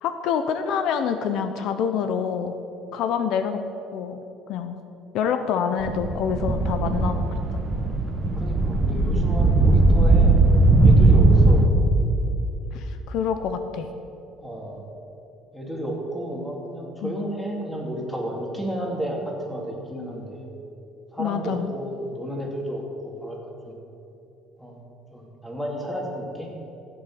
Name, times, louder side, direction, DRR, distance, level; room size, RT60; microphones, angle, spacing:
voice 1, 0.0-2.6 2.9-3.6 3.9-4.2 4.5-4.8 5.1-7.2 12.7-13.9 17.0-17.2 21.2-21.7, left 7 dB, 65° left, 9 dB, 0.8 m, -26 dB
sound 1, 5.8-11.7, right 2 dB, 30° right, 1.2 m, -18 dB
voice 2, 8.4-10.3 10.8-11.7 14.4-14.8 15.5-20.5 21.1-22.8 23.2-23.4 23.6-23.7 24.6-24.8 25.1-26.5, right 1 dB, 5° left, -1 dB, 2.6 m, -32 dB
15.0 x 8.1 x 7.7 m, 2.9 s
cardioid pair, 135°, 0 cm